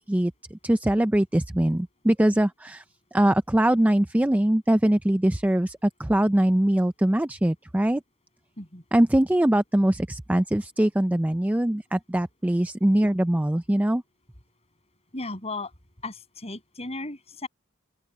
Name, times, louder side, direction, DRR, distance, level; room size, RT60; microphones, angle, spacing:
voice 1, 0.0-2.8 3.1-8.0 8.9-14.0, right 1 dB, 10° right, 0.4 m, -22 dB
voice 2, 15.1-15.7 16.0-17.5, left 2 dB, 30° left, 7.4 m, -35 dB
open air
head